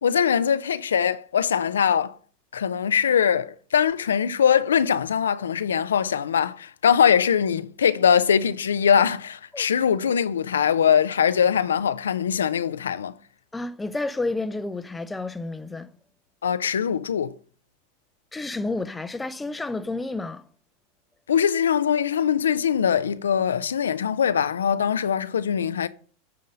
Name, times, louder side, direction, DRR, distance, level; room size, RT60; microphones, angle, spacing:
voice 1, 0.0-2.1 2.5-13.1 16.4-17.3 21.3-25.9, left 8 dB, 80° left, 0.4 m, -22 dB
voice 2, 13.5-15.9 18.3-20.4, left 2 dB, 10° left, 0.6 m, -30 dB
9.2 x 3.8 x 6.6 m
hypercardioid pair, 95°, 0 cm